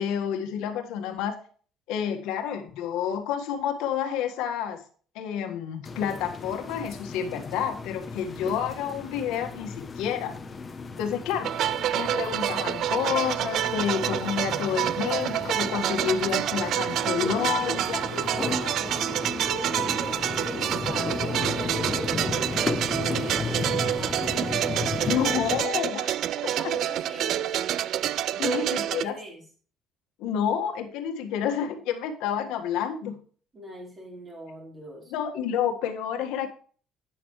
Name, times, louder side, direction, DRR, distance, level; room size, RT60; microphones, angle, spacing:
voice 1, 0.0-1.3 1.9-4.8 5.1-10.3 11.0-11.5 11.9-18.0 25.1-26.7 28.4-29.1 30.2-33.2 35.1-36.5, left 8 dB, 85° left, 4 dB, 1.6 m, -29 dB
sound 1, 5.8-25.6, left 4 dB, 20° left, 0.9 m, -35 dB
sound 2, 11.4-29.0, right 11 dB, 55° right, 0.4 m, -28 dB
voice 2, 17.1-24.2 26.5-27.5 28.3-29.4 33.5-35.1, equal, 20° right, -1 dB, 4.3 m, -41 dB
11.0 x 9.0 x 3.2 m, 0.42 s
cardioid pair, 155°, 0 cm